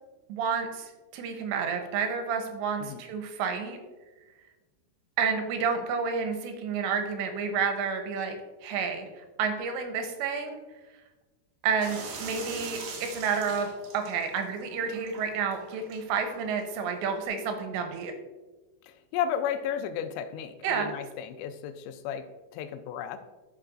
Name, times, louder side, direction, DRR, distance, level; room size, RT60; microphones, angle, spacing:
voice 1, 0.3-3.8 5.2-8.4 8.6-10.6 11.6-13.7 13.9-18.1 20.6-20.9, right 6 dB, 90° right, 6 dB, 2.9 m, -30 dB
sound 1, 11.8-17.3, right 4 dB, 70° right, 2.7 m, -43 dB
voice 2, 18.8-22.2 22.5-23.2, left 8 dB, 85° left, 9 dB, 2.8 m, -33 dB
11.5 x 5.4 x 2.5 m, 1.2 s
omnidirectional pair, 5.2 m